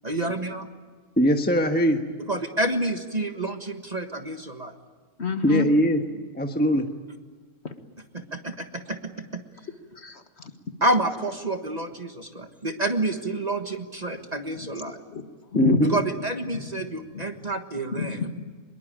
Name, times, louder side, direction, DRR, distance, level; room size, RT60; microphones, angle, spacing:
voice 1, 0.0-0.7 2.3-4.7 8.1-9.4 10.8-15.0 15.8-18.3, right 2 dB, 30° right, 6 dB, 1.6 m, -29 dB
voice 2, 1.2-2.0 5.4-6.0 6.3-6.9 15.5-16.0, equal, 5° left, 5 dB, 1.2 m, -21 dB
voice 3, 5.2-5.7 6.1-6.2 7.6-7.7 10.0-10.5 15.1-15.8 17.1-17.2 17.9-18.5, left 4 dB, 45° left, 7 dB, 1.8 m, -28 dB
24.5 x 22.0 x 8.9 m, 1.5 s
omnidirectional pair, 1.6 m